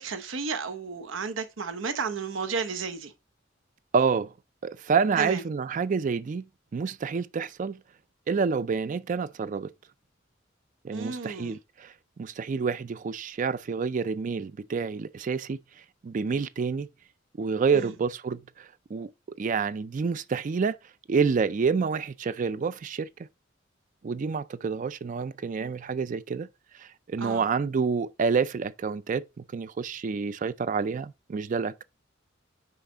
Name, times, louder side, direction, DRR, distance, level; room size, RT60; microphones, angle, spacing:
voice 1, 0.0-3.1 5.2-5.4 10.9-11.6 17.7-17.9 27.2-27.4, right 5 dB, 85° right, 0.9 m, -33 dB
voice 2, 3.9-4.3 4.6-6.5 6.7-7.8 8.3-9.7 10.8-15.6 16.0-16.9 17.4-19.1 19.4-20.8 21.1-23.1 24.0-26.5 26.8-31.8, right 5 dB, 40° right, 0.4 m, -28 dB
5.7 x 4.8 x 3.9 m
head